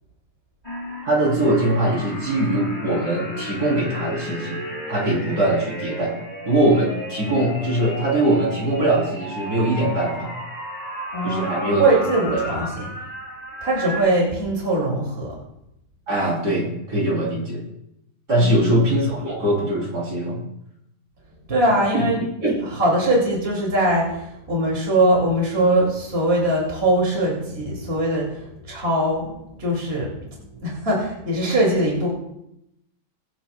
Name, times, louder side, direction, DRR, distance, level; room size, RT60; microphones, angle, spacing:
sound 1, 0.6-14.0, left 1 dB, 20° left, 2.5 m, -34 dB
voice 1, 1.0-4.6 4.9-6.2 6.5-10.4 11.2-11.8 12.2-12.7 16.1-17.6 18.3-20.4 21.9-22.0 22.4-22.5, right 1 dB, 55° right, -4 dB, 4.2 m, -22 dB
voice 2, 11.1-12.9 13.6-15.3 18.4-18.7 21.5-22.2 22.6-32.1, right 1 dB, 35° right, -3 dB, 2.8 m, -22 dB
23.0 x 9.2 x 2.3 m, 0.82 s
omnidirectional pair, 1.9 m